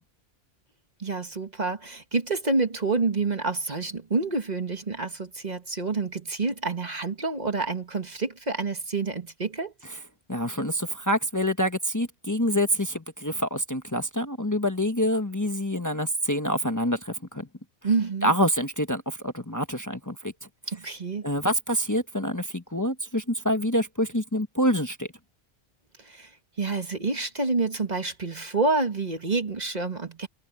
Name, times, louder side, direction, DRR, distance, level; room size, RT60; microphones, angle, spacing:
voice 1, 1.0-9.7 17.8-18.3 20.7-21.3 26.0-26.3 26.6-30.3, right 3 dB, 40° right, 1.6 m, -28 dB
voice 2, 10.3-17.5 18.2-20.3 21.2-25.1, equal, 20° left, 1.2 m, -26 dB
omnidirectional pair, 1.1 m